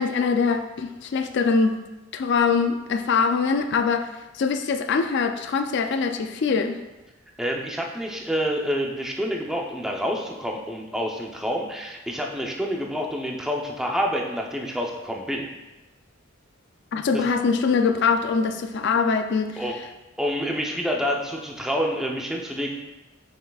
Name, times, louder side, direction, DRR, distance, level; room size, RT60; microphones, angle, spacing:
voice 1, 0.0-1.8 2.1-4.1 4.3-6.8 16.9-19.6, left 5 dB, 60° left, 7 dB, 0.4 m, -23 dB
voice 2, 7.4-15.5 17.1-17.2 19.6-19.8 20.2-22.7, equal, 5° right, -1 dB, 0.7 m, -28 dB
7.3 x 5.8 x 2.4 m, 1.1 s
head